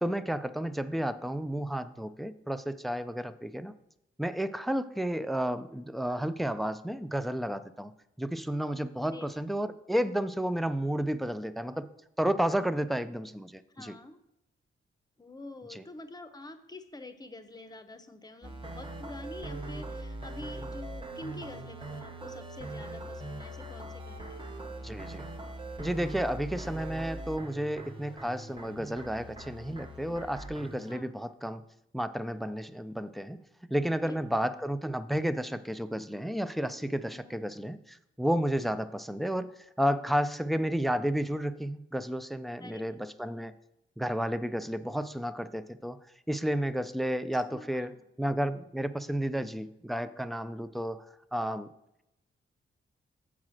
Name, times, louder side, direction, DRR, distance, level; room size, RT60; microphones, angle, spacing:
voice 1, 0.0-3.7 4.2-7.9 8.2-11.9 12.2-13.9 15.7-15.8 24.8-25.3 25.8-31.6 31.9-33.4 33.7-39.5 39.8-43.5 44.0-46.0 46.3-47.9 48.2-51.1 51.3-51.7, equal, ahead, 12 dB, 0.4 m, -32 dB
voice 2, 13.7-14.2 15.2-24.5 30.9-31.1 34.0-34.2 37.1-37.4 42.6-42.9 47.3-48.1, left 2 dB, 20° left, 9 dB, 0.8 m, -47 dB
sound 1, 18.4-30.9, right 2 dB, 25° right, 1.0 m, -41 dB
7.3 x 4.8 x 6.3 m, 0.87 s
cardioid pair, 100°, 21 cm